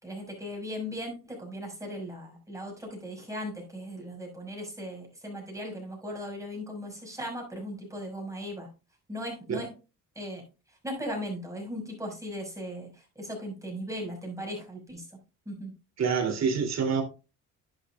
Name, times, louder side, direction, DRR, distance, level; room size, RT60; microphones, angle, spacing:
voice 1, 0.0-8.7 9.1-9.7 10.2-10.4 10.8-12.9 13.2-15.0 15.5-15.7, equal, 10° right, 6.0 m, -37 dB
voice 2, 16.0-17.0, right 6 dB, 55° right, 3.3 m, -26 dB
11.5 x 8.0 x 2.5 m
cardioid pair, 105°, 32 cm